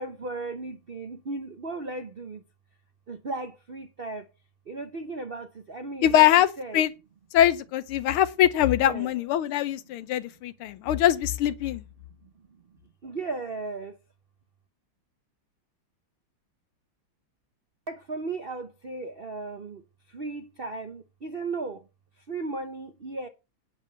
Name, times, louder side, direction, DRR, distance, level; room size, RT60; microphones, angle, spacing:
voice 1, 0.0-2.4 3.1-4.3 4.7-6.3 6.6-6.8 8.8-9.1 13.0-14.0 17.9-19.8 20.1-21.8 22.3-23.3, right 3 dB, 75° right, 0.5 m, -35 dB
voice 2, 6.0-6.5 6.7-6.9 7.3-11.8, left 11 dB, 85° left, 1.7 m, -22 dB
9.0 x 5.3 x 7.6 m
omnidirectional pair, 2.3 m